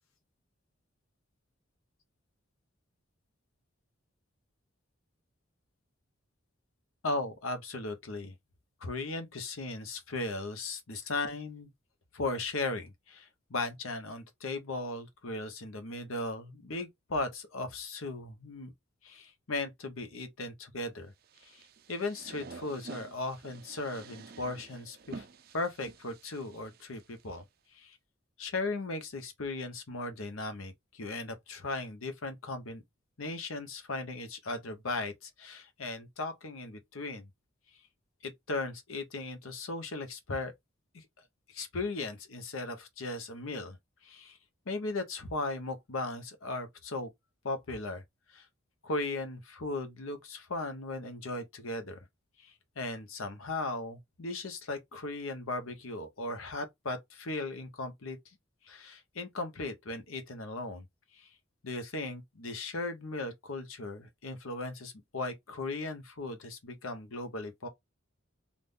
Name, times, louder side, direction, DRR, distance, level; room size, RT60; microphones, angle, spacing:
voice 1, 7.0-8.3 8.8-11.7 12.1-18.7 19.0-21.1 21.4-21.6 21.9-25.3 25.5-27.4 27.7-28.0 28.4-32.8 33.2-37.3 38.2-40.5 40.9-41.1 41.5-43.8 44.0-44.4 44.7-47.1 47.4-48.0 48.3-48.5 48.8-52.0 52.4-58.2 58.6-60.9 61.1-61.3 61.6-67.7, left 2 dB, 80° left, 0.9 m, -37 dB
sound 1, 21.2-27.4, right 4 dB, 45° right, 0.5 m, -49 dB
3.6 x 2.5 x 2.5 m
head